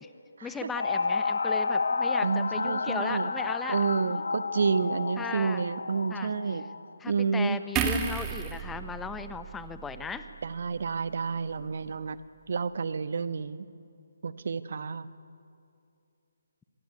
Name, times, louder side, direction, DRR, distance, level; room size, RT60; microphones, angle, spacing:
voice 1, 0.4-3.8 4.0-4.1 5.2-5.6 6.1-6.3 7.0-10.3, left 5 dB, 10° left, 10 dB, 1.1 m, -37 dB
sound 1, 0.7-6.9, left 4 dB, 70° left, 1.1 m, -30 dB
voice 2, 2.2-3.3 3.7-6.6 7.1-7.6 10.4-12.2 12.5-13.6 14.2-15.1, right 5 dB, 55° right, 12 dB, 1.2 m, -29 dB
sound 2, 7.8-11.1 11.5-11.7, right 6 dB, 20° right, 2.2 m, -34 dB
26.0 x 20.0 x 9.5 m, 2.5 s
figure-of-eight pair, 145°, 0 cm